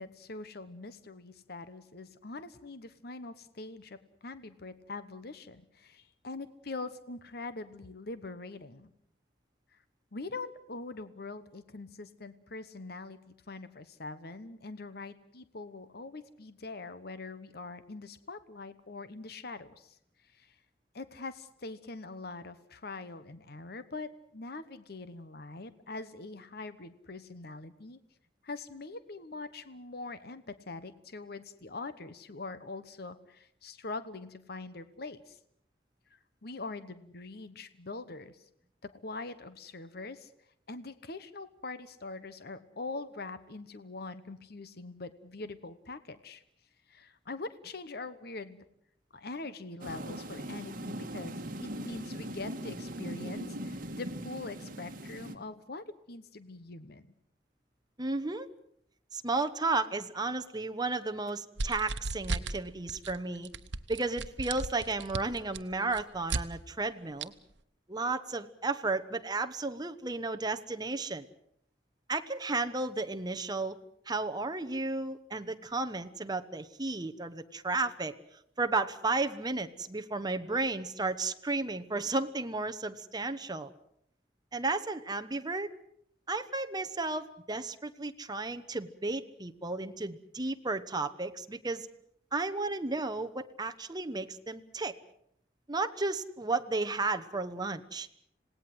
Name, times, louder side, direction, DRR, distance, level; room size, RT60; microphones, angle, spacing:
voice 1, 0.0-8.9 9.7-9.8 10.1-20.0 20.2-20.5 20.9-28.0 28.4-35.4 36.1-38.4 38.8-40.3 40.7-46.4 46.9-48.6 49.1-57.1, left 3 dB, 60° left, 13 dB, 1.1 m, -43 dB
sound 1, 49.8-55.3, right 1 dB, 50° right, 1.8 m, -40 dB
voice 2, 58.0-58.5 59.1-63.5 63.9-67.3 67.9-71.2 72.1-73.8 74.1-78.1 78.6-83.7 84.5-85.7 86.3-91.9 92.3-95.0 95.7-98.1, right 3 dB, 25° right, 8 dB, 1.1 m, -33 dB
sound 2, 61.6-62.6 62.9-63.2 63.5-66.4 67.2-67.3, right 3 dB, 80° right, 1.1 m, -35 dB
27.0 x 18.5 x 7.8 m, 0.73 s
head